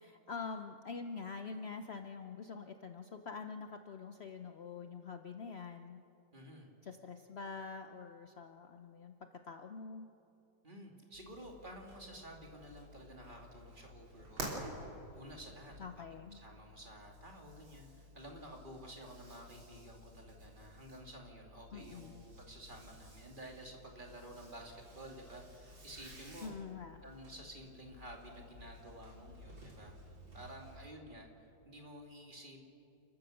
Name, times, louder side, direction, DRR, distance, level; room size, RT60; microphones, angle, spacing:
voice 1, 0.0-6.0 6.8-10.1 15.8-16.4 21.7-22.2 26.4-27.0, left 5 dB, 75° left, 7 dB, 0.5 m, -46 dB
voice 2, 6.3-6.7 10.6-15.8 16.3-26.6 27.0-29.9 30.3-32.6, right 1 dB, 25° right, 1 dB, 2.6 m, -52 dB
sound 1, 11.1-30.9, right 1 dB, 75° right, 4.4 m, -52 dB
29.5 x 14.5 x 6.5 m, 2.8 s
omnidirectional pair, 2.1 m